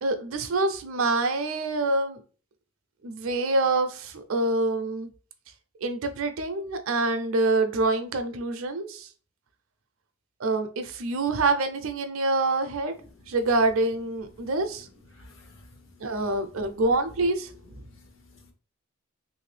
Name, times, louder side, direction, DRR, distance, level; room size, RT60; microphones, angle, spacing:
voice 1, 0.0-2.2 3.0-5.1 5.8-9.1 10.4-12.9 13.3-14.9 16.0-17.5, right 2 dB, 70° right, 8 dB, 0.5 m, -26 dB
voice 2, 15.1-16.1 17.9-18.5, left 2 dB, 60° left, 4 dB, 0.8 m, -53 dB
3.1 x 2.6 x 3.2 m, 0.39 s
head